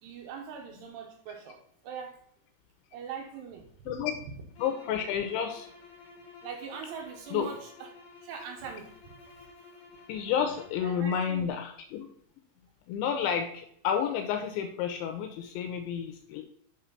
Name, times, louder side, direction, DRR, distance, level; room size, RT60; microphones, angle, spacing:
voice 1, 0.0-2.2 2.9-4.1 6.4-7.9 8.2-9.5 10.8-11.6, right 6 dB, 75° right, 3 dB, 2.7 m, -42 dB
sound 1, 4.5-10.9, left 4 dB, 50° left, 2.8 m, -52 dB
voice 2, 4.6-5.7 7.3-7.5 10.1-12.1 12.9-16.4, left 8 dB, 85° left, 5 dB, 2.9 m, -30 dB
7.9 x 4.4 x 5.5 m, 0.64 s
omnidirectional pair, 5.6 m